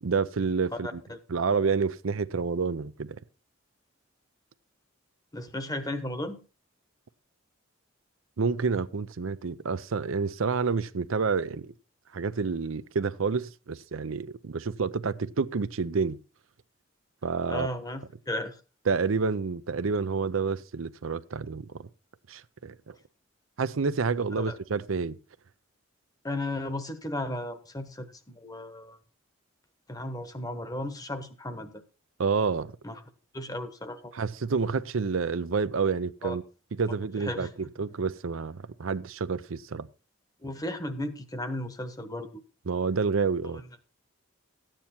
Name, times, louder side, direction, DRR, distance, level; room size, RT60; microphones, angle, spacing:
voice 1, 0.0-1.0 1.3-3.2 8.4-11.7 12.1-16.2 17.2-17.7 18.9-21.9 22.3-23.0 23.6-25.2 32.2-32.7 34.1-36.4 36.8-37.5 37.8-39.9 42.7-43.6, right 5 dB, 75° right, 0.6 m, -29 dB
voice 2, 0.8-1.2 5.3-6.4 17.5-18.6 24.4-24.6 26.2-29.0 29.9-31.8 32.8-33.0 33.3-34.1 36.2-36.4 37.2-37.5 40.4-42.3 43.5-43.7, left 1 dB, 15° left, 1.0 m, -35 dB
13.5 x 9.1 x 4.3 m
head